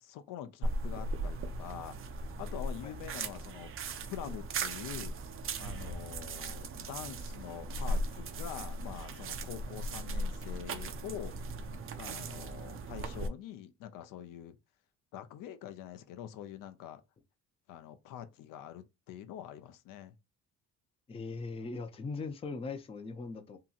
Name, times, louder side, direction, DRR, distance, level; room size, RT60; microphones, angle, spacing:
voice 1, 0.0-2.0 2.4-3.7 4.1-5.1 5.6-11.3 12.0-14.6 15.1-17.0 17.7-20.2, left 10 dB, 75° left, 0.5 m, -45 dB
sound 1, 0.6-13.3, right 2 dB, 40° right, 0.4 m, -38 dB
voice 2, 21.1-23.6, left 4 dB, 20° left, 0.4 m, -40 dB
2.8 x 2.6 x 2.4 m
cardioid pair, 95°, 33 cm